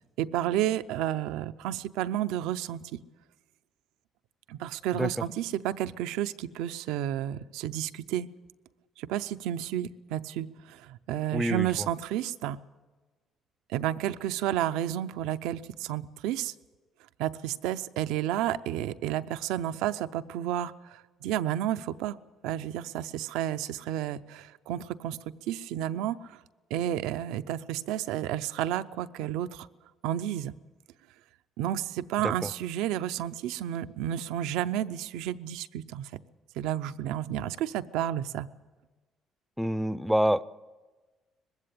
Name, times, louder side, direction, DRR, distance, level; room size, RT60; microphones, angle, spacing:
voice 1, 0.2-3.0 4.5-8.3 9.0-12.6 13.7-16.5 17.2-22.2 22.4-26.4 26.7-29.7 30.0-30.5 31.6-36.2 36.6-38.5, right 12 dB, 90° right, 12 dB, 0.5 m, -31 dB
voice 2, 11.3-11.7 32.2-32.5 39.6-40.4, equal, ahead, 17 dB, 0.5 m, -26 dB
20.5 x 15.5 x 8.4 m, 1.3 s
cardioid pair, 85°, 0 cm